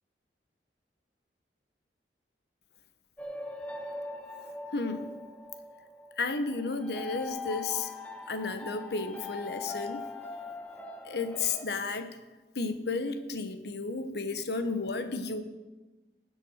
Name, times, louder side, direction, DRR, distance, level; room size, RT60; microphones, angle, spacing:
sound 1, 3.2-11.7, left 3 dB, 10° left, 1.1 m, -41 dB
voice 1, 4.7-5.1 6.2-7.9 8.3-10.0 11.0-12.1 12.5-15.4, left 3 dB, 65° left, 9 dB, 1.2 m, -32 dB
19.5 x 6.9 x 6.4 m, 1.2 s
head